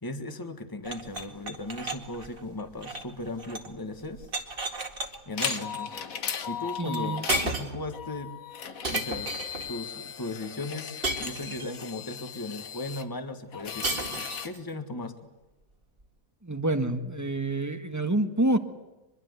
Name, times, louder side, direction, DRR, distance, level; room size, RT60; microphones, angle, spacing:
voice 1, 0.0-4.3 5.3-6.0 6.5-8.3 8.9-9.3 9.7-15.3, left 2 dB, 15° left, 8 dB, 1.5 m, -37 dB
sound 1, 0.8-3.8 4.0-5.1 5.4-5.8 6.9-7.0 7.3-7.9 8.8-9.7 11.0-11.9 13.8-14.6, right 2 dB, 40° right, 2.2 m, -33 dB
sound 2, 5.1-7.5 7.9-13.0 13.5-14.5, left 8 dB, 70° left, 1.6 m, -36 dB
voice 2, 6.8-7.3 16.4-18.6, right 2 dB, 10° right, 8 dB, 1.4 m, -27 dB
24.0 x 22.0 x 8.2 m, 1.0 s
omnidirectional pair, 1.5 m